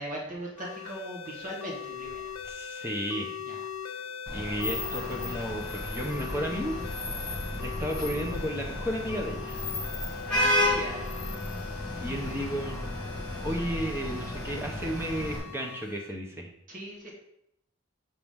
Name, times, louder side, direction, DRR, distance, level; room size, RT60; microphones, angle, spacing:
voice 1, 0.0-2.3 2.7-2.8 3.5-3.7 3.9-4.1 10.3-11.2 16.7-17.1, right 1 dB, 40° right, -2 dB, 1.5 m, -39 dB
sound 1, 0.6-16.1, left 7 dB, 90° left, 0.6 m, -41 dB
voice 2, 2.4-3.4 4.3-6.8 7.6-9.6 12.0-12.9 13.4-16.5, equal, 10° right, 0 dB, 0.9 m, -33 dB
Vehicle horn car horn honking / Traffic noise roadway noise, 4.3-15.4, left 1 dB, 5° left, 2.7 m, -33 dB
7.1 x 4.8 x 3.6 m, 0.75 s
head